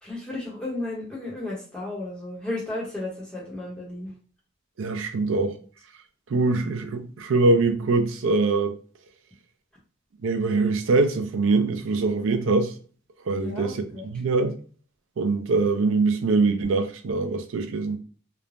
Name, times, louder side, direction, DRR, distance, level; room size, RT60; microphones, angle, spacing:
voice 1, 0.0-4.1 5.2-5.3 13.4-14.1, left 2 dB, 5° left, 0.7 m, -34 dB
voice 2, 4.8-5.6 6.3-8.8 10.2-12.7 13.3-13.8 14.1-14.6 15.2-18.0, right 3 dB, 65° right, 0.4 m, -23 dB
3.2 x 2.0 x 2.4 m
head